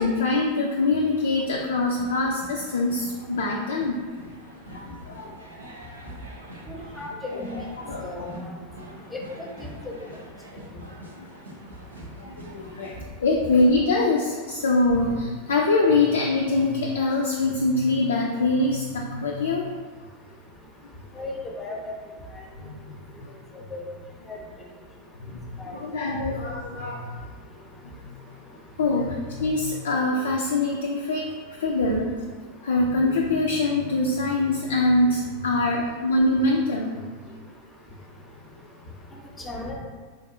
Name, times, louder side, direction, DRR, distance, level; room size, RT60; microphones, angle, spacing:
voice 1, 0.0-4.0 4.7-5.3 7.3-8.2 10.5-10.6 11.2-11.3 12.2-19.7 22.6-22.8 23.2-23.3 25.2-27.2 27.8-28.1 28.8-32.1 32.6-37.0, left 2 dB, 70° left, -1 dB, 0.3 m, -24 dB
sound 1, 1.5-13.0, right 1 dB, 85° right, 0.5 m, -45 dB
voice 2, 6.7-7.1 7.4-7.7 8.0-8.4 9.1-9.2 21.2-21.3 21.6-21.8 23.7-23.8 24.3-24.4 25.6-25.7 39.5-39.7, left 2 dB, 10° left, -1 dB, 0.6 m, -35 dB
3.8 x 2.5 x 2.6 m, 1.5 s
figure-of-eight pair, 90°, 0 cm